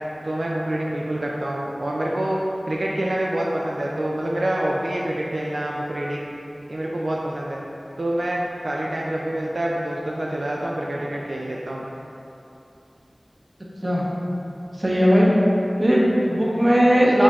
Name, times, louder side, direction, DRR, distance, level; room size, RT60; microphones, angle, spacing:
voice 1, 0.2-6.3 6.7-7.6 8.0-11.9, right 1 dB, 80° right, -3 dB, 0.3 m, -26 dB
voice 2, 14.8-15.3 15.8-17.2, equal, 35° right, -5 dB, 0.8 m, -17 dB
4.9 x 4.1 x 2.3 m, 2.8 s
wide cardioid pair, 50°, 0 cm